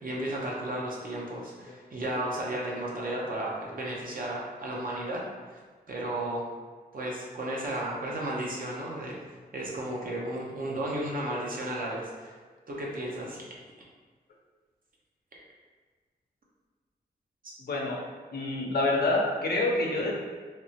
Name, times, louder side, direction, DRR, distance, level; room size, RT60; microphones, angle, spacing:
voice 1, 0.0-5.6 5.9-6.4 6.9-9.2 9.5-12.3 12.7-13.4 17.4-17.5, right 1 dB, 55° right, -4 dB, 0.8 m, -34 dB
voice 2, 17.7-18.0 18.3-20.1, left 2 dB, 70° left, -1 dB, 0.6 m, -27 dB
3.3 x 2.0 x 2.8 m, 1.5 s
cardioid pair, 65°, 17 cm